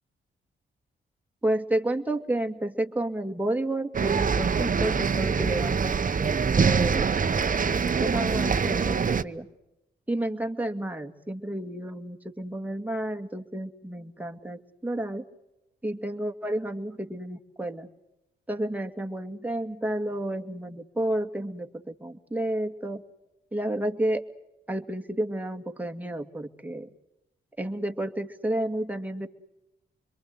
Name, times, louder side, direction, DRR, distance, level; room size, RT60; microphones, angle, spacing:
voice 1, 1.4-6.0 6.6-9.5 10.1-15.2 15.8-17.9 18.5-23.0 23.5-24.2 24.7-26.9 27.6-29.3, right 1 dB, 10° right, 4 dB, 2.2 m, -31 dB
sound 1, 3.9-9.2, right 5 dB, 40° right, 0.9 m, -24 dB
26.0 x 22.5 x 7.9 m, 0.91 s
cardioid pair, 65°, 20 cm